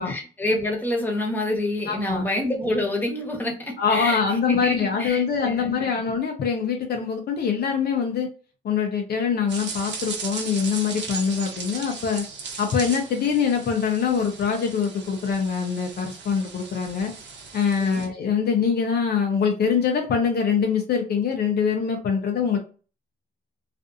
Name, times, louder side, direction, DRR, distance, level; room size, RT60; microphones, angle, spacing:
voice 1, 0.0-5.9 17.8-18.0, left 1 dB, 10° left, 0 dB, 1.0 m, -27 dB
voice 2, 1.9-2.2 3.8-8.3 8.6-12.2 12.6-17.1 17.5-22.6, left 6 dB, 55° left, 2 dB, 0.6 m, -24 dB
sound 1, 9.5-18.1, right 5 dB, 65° right, 0.9 m, -37 dB
2.5 x 2.5 x 2.5 m, 0.37 s
cardioid pair, 90°, 20 cm